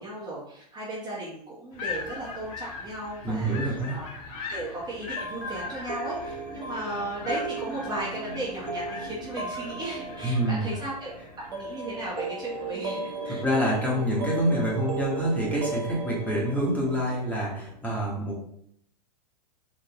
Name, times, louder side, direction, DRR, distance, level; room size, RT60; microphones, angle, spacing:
voice 1, 0.0-4.1 4.5-11.1 11.5-13.4, right 1 dB, 20° right, -6 dB, 0.9 m, -36 dB
sound 1, 1.7-13.3, left 4 dB, 50° left, 1.0 m, -41 dB
voice 2, 3.2-3.9 10.2-10.7 13.3-18.4, right 1 dB, 5° left, -5 dB, 1.2 m, -27 dB
sound 2, 5.2-17.8, right 3 dB, 85° right, 0.8 m, -36 dB
3.8 x 2.6 x 2.9 m, 0.69 s
hypercardioid pair, 110°, 21 cm